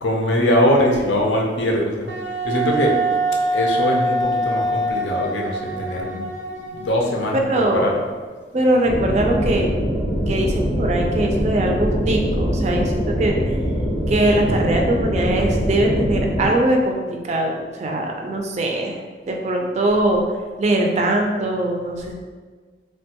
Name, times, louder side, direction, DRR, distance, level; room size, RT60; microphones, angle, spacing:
voice 1, 0.0-2.1 2.4-3.0 3.5-6.3 6.6-8.1, left 1 dB, 75° left, -1 dB, 0.5 m, -21 dB
Wind instrument woodwind instrument, 2.1-7.5, right 1 dB, 85° right, 0.6 m, -24 dB
voice 2, 7.3-7.9 8.5-9.7 10.3-13.4 14.1-19.0 19.3-20.2 20.6-22.1, right 1 dB, 40° right, 1 dB, 0.4 m, -21 dB
sound 1, 8.9-16.5, equal, 10° left, 0.6 m, -23 dB
3.3 x 2.2 x 2.8 m, 1.5 s
head